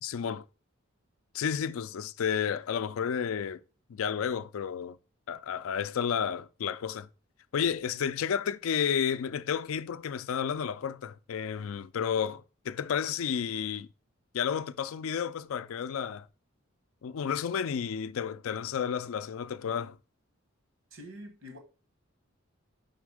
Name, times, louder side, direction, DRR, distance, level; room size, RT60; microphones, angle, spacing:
voice 1, 0.0-0.4 1.3-3.6 3.9-5.0 5.3-7.1 7.5-13.9 14.3-16.3 17.0-20.0, left 7 dB, 80° left, 0.4 m, -31 dB
voice 2, 20.9-21.6, equal, 75° right, 1.2 m, -45 dB
5.2 x 4.0 x 4.8 m
head